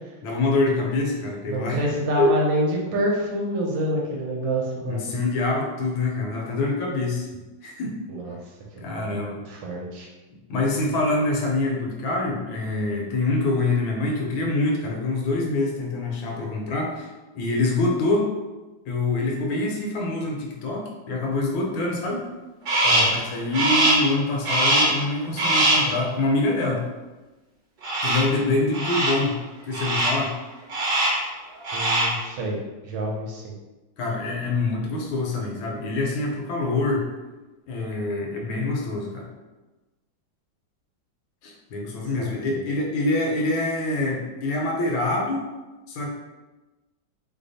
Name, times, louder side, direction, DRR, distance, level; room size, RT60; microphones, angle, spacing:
voice 1, 0.2-1.8 2.2-2.3 4.8-7.3 7.6-8.0 8.8-9.4 10.5-17.1 17.3-18.3 18.9-22.3 23.1-26.8 28.0-29.4 29.7-30.3 34.0-37.1 37.7-39.3 41.4-45.4 45.9-46.1, left 2 dB, 75° left, 0 dB, 1.3 m, -25 dB
voice 2, 1.5-5.0 8.1-8.3 8.8-10.1 22.8-23.2 31.7-32.6 32.8-33.5 42.2-42.7, right 1 dB, 70° right, -2 dB, 1.3 m, -27 dB
Crow, 22.7-23.2 23.5-24.1 24.4-25.0 25.4-25.9 27.8-28.4 28.7-29.3 29.7-30.3 30.7-31.3 31.6-32.2, right 1 dB, 55° right, 0.9 m, -22 dB
3.3 x 2.0 x 3.9 m, 1.1 s
omnidirectional pair, 2.2 m